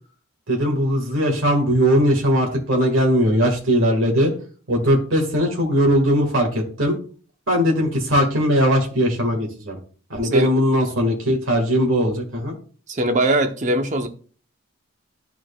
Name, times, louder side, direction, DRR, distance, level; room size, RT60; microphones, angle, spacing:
voice 1, 0.5-4.3 4.7-7.0 7.5-9.8 10.1-12.5, equal, 70° right, 1.7 m, -19 dB
voice 2, 12.9-14.1, right 1 dB, 35° right, 0.7 m, -20 dB
11.0 x 4.6 x 2.3 m
head